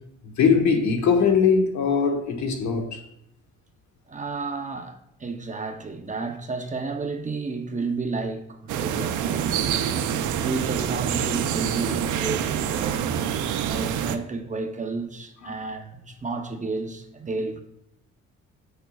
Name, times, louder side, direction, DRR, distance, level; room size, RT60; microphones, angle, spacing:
voice 1, 0.4-3.0 15.4-15.5, left 6 dB, 70° left, 1.3 m, -21 dB
voice 2, 4.1-9.9 10.3-13.0 13.6-17.6, right 3 dB, 25° right, 0.8 m, -32 dB
sound 1, 8.7-14.2, right 9 dB, 85° right, 0.6 m, -26 dB
9.1 x 6.5 x 2.4 m
cardioid pair, 90°, 30 cm